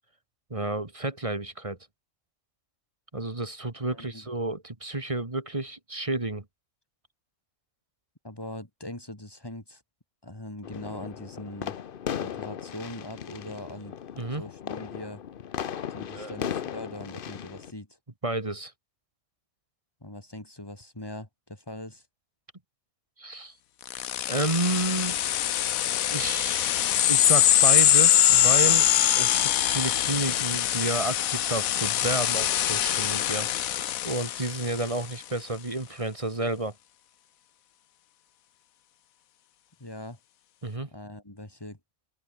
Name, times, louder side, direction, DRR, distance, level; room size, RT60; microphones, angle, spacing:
voice 1, 0.5-1.8 3.1-6.4 14.2-14.4 16.1-16.3 18.2-18.7 23.2-23.5 24.3-25.2 26.1-26.6 27.1-28.9 29.1-33.5 34.0-36.7 40.6-40.9, right 2 dB, 25° right, 1.8 m, -31 dB
voice 2, 3.9-4.3 8.2-9.8 10.2-11.7 12.2-13.9 14.4-15.2 15.9-17.9 20.0-22.0 39.8-40.2 40.9-41.8, left 1 dB, 15° left, 3.1 m, -41 dB
sound 1, 10.6-17.7, left 8 dB, 50° left, 0.8 m, -37 dB
sound 2, 23.9-35.0, left 11 dB, 80° left, 1.2 m, -23 dB
omnidirectional pair, 1.4 m